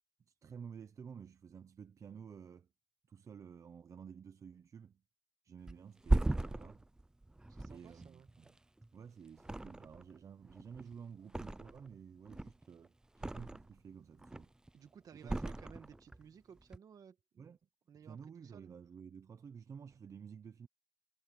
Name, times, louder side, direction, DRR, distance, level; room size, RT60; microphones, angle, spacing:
voice 1, 0.4-2.7 3.1-5.0 5.4-6.8 7.6-8.6 8.9-14.5 15.1-15.7 17.4-17.6 18.0-20.7, right 7 dB, 60° right, 0.8 m, -52 dB
Thump thud, 5.7-8.9 9.4-10.2 10.4-11.9 12.2-13.8 14.2-14.7 15.2-16.2 16.6-16.8, right 2 dB, 10° right, 0.3 m, -37 dB
voice 2, 7.5-8.3 14.7-17.4 17.9-18.7, right 7 dB, 85° right, 1.8 m, -57 dB
wide cardioid pair, 110°, 6 cm